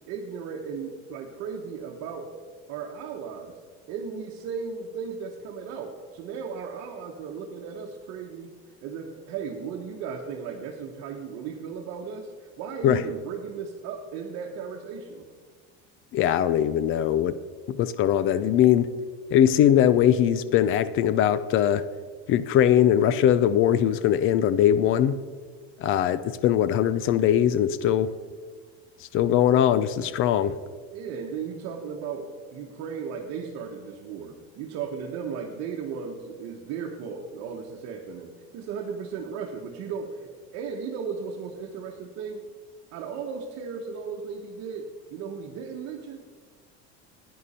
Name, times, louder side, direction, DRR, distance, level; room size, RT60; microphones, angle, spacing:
voice 1, 0.1-2.3 2.7-3.6 3.9-8.5 8.8-15.3 30.9-42.4 42.9-46.2, right 6 dB, 55° right, 0 dB, 1.1 m, -36 dB
voice 2, 16.1-17.4 17.7-18.9 19.3-21.8 22.3-25.2 25.8-28.1 29.1-30.6, left 10 dB, 45° left, 15 dB, 0.5 m, -21 dB
10.5 x 9.6 x 4.2 m, 1.5 s
cardioid pair, 140°, 31 cm